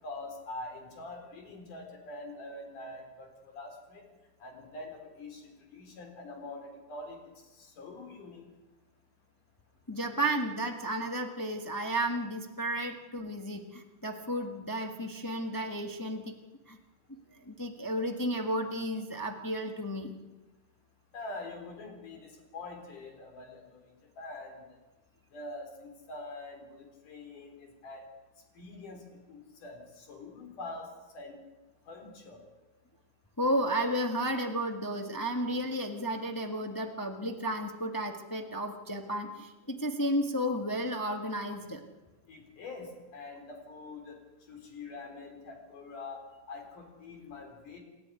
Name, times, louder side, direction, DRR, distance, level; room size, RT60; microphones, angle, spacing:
voice 1, 0.0-4.1 4.4-7.2 7.5-8.4 21.1-23.9 24.2-24.8 25.3-28.1 28.6-31.4 31.9-32.5 42.3-44.2 44.5-47.8, left 2 dB, 75° left, 4 dB, 5.3 m, -45 dB
voice 2, 9.9-16.3 16.7-16.8 17.4-20.1 33.4-41.8, right 1 dB, 30° left, 3 dB, 0.4 m, -33 dB
28.5 x 12.5 x 9.7 m, 1.1 s
omnidirectional pair, 3.7 m